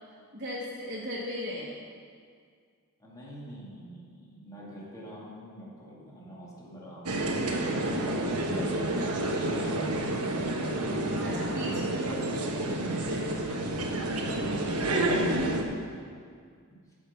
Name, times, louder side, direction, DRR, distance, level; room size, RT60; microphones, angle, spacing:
voice 1, 0.3-1.7 7.5-8.5 11.2-11.9 12.9-13.3, equal, 40° right, -7 dB, 1.5 m, -38 dB
voice 2, 3.0-7.2 8.0-8.7 9.4-10.8 11.1-12.4 13.0-15.9 16.7-16.8, equal, 15° left, -6 dB, 2.1 m, -45 dB
sound 1, 7.1-15.6, right 1 dB, 90° right, 1.1 m, -29 dB
13.0 x 5.3 x 5.8 m, 2.1 s
head